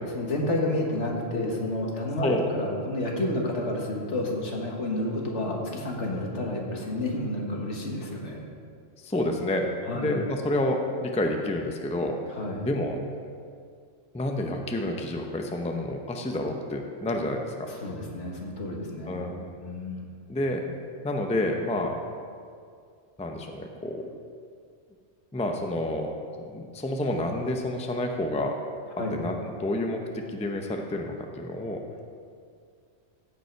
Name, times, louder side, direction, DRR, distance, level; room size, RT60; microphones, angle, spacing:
voice 1, 0.1-8.4 9.9-10.1 12.3-12.7 17.7-19.3 19.6-20.1 29.0-29.2, left 1 dB, 70° left, -1 dB, 1.7 m, -30 dB
voice 2, 2.2-2.5 9.0-12.2 12.6-13.0 14.1-17.7 19.1-19.5 20.3-20.6 21.0-22.0 23.2-24.1 25.3-28.6 29.1-31.8, left 1 dB, 10° left, 3 dB, 0.5 m, -29 dB
15.5 x 5.6 x 4.6 m, 2.3 s
omnidirectional pair, 1.3 m